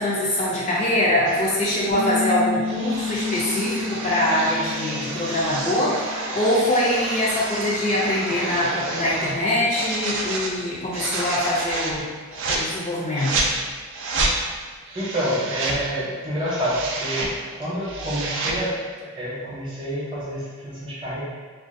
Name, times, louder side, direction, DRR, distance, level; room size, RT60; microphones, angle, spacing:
voice 1, 0.0-12.1 12.3-13.5, left 1 dB, 30° left, -6 dB, 0.3 m, -23 dB
sound 1, 1.3-1.5 2.6-9.4 9.7-10.5 10.9-12.0 12.3-12.6 13.2-13.5 13.9-14.3 14.9-15.8 16.3-17.3 17.7-18.6, right 2 dB, 55° right, 0.3 m, -29 dB
sound 2, 1.9-8.2, left 5 dB, 85° left, 0.5 m, -32 dB
voice 2, 14.9-17.2 17.6-18.7 18.9-21.2, equal, 20° right, -8 dB, 0.7 m, -28 dB
2.4 x 2.2 x 2.5 m, 1.5 s
head